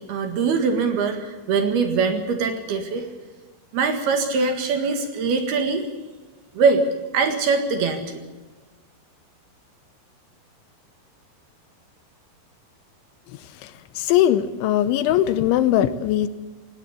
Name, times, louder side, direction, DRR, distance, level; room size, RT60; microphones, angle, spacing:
voice 1, 0.0-3.1 3.7-5.8 6.5-6.8 7.1-8.2, right 4 dB, 60° right, 6 dB, 3.3 m, -22 dB
voice 2, 14.0-16.3, left 12 dB, 80° left, 13 dB, 3.0 m, -20 dB
18.5 x 18.0 x 8.4 m, 1.2 s
omnidirectional pair, 5.7 m